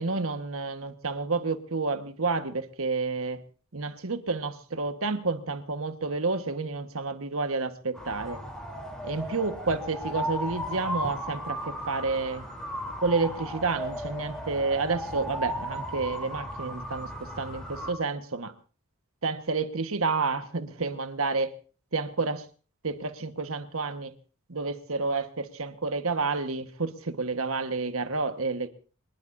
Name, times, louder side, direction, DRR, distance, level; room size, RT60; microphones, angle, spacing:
voice 1, 0.0-3.4 3.7-8.4 9.0-12.5 13.0-18.5 19.2-21.5 21.9-22.4 22.8-24.1 24.5-28.7, right 3 dB, 70° right, 1.5 m, -30 dB
sound 1, 7.9-17.9, equal, 5° left, 3.5 m, -36 dB
25.0 x 20.0 x 2.7 m
head